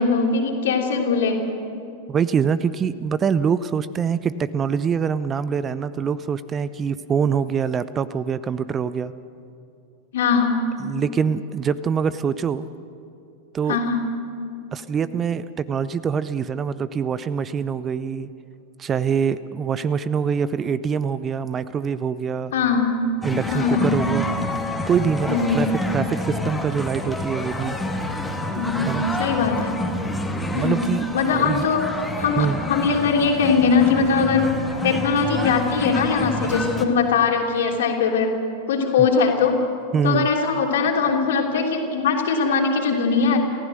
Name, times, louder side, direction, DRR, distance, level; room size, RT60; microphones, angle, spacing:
voice 1, 0.0-1.4 10.1-10.6 13.7-14.0 22.5-23.0 23.5-24.0 25.3-25.7 28.5-29.8 30.5-30.8 31.1-31.9 32.2-34.5 34.8-38.3 38.7-39.6 40.0-43.4, left 5 dB, 60° left, 1 dB, 3.3 m, -21 dB
voice 2, 2.1-9.1 10.8-12.7 13.5-13.8 14.7-18.3 18.8-22.5 23.2-24.3 24.8-25.7 25.9-27.8 28.9-29.0 30.5-31.7 32.4-32.6 39.0-39.1 39.9-40.3, right 6 dB, 25° right, 16 dB, 0.6 m, -24 dB
sound 1, 23.2-36.9, left 1 dB, 5° left, 2.1 m, -28 dB
29.0 x 15.5 x 6.6 m, 2.7 s
figure-of-eight pair, 90°, 0 cm